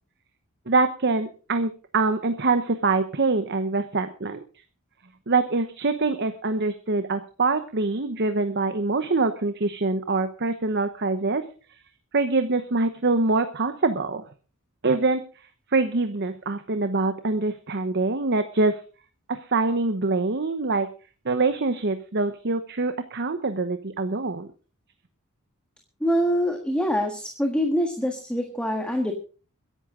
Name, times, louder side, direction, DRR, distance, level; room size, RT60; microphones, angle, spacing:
voice 1, 0.7-4.4 5.3-11.4 12.1-14.2 14.8-15.2 15.7-18.8 19.3-20.9 21.2-24.5, right 3 dB, 50° right, 9 dB, 1.0 m, -24 dB
voice 2, 26.0-29.1, equal, 5° left, 3 dB, 1.6 m, -24 dB
22.0 x 11.0 x 3.8 m, 0.37 s
head